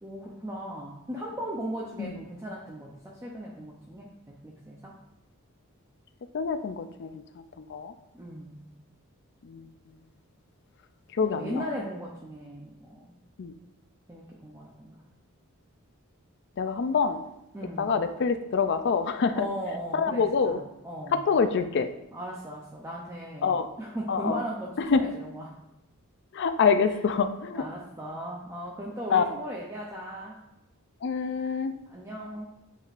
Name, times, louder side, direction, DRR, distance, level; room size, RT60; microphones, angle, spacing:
voice 1, 0.0-4.9 8.1-8.6 11.2-13.1 14.1-15.1 17.5-18.0 19.3-21.2 22.1-25.6 26.8-27.0 27.5-30.4 31.9-32.5, equal, 15° right, -3 dB, 0.5 m, -37 dB
voice 2, 6.3-7.2 7.6-7.9 9.4-9.7 11.2-11.6 13.4-13.5 16.6-17.2 17.8-19.4 19.9-20.6 21.1-21.9 23.4-23.7 24.1-24.4 24.9-25.0 26.3-27.6 29.1-29.2 31.0-31.7, left 5 dB, 55° left, 10 dB, 0.4 m, -26 dB
7.6 x 5.2 x 2.5 m, 0.87 s
head